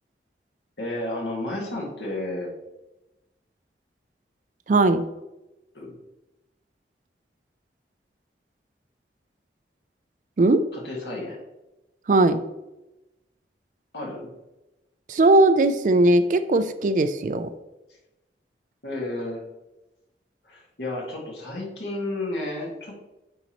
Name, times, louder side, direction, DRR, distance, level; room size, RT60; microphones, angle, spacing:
voice 1, 0.8-2.5 5.7-5.9 10.7-11.4 13.9-14.3 18.8-19.4 20.4-22.9, left 1 dB, 80° left, -2 dB, 1.9 m, -32 dB
voice 2, 4.7-5.0 10.4-10.6 12.1-12.4 15.1-17.5, right 2 dB, 45° right, 12 dB, 0.3 m, -19 dB
9.3 x 4.0 x 3.0 m, 0.98 s
head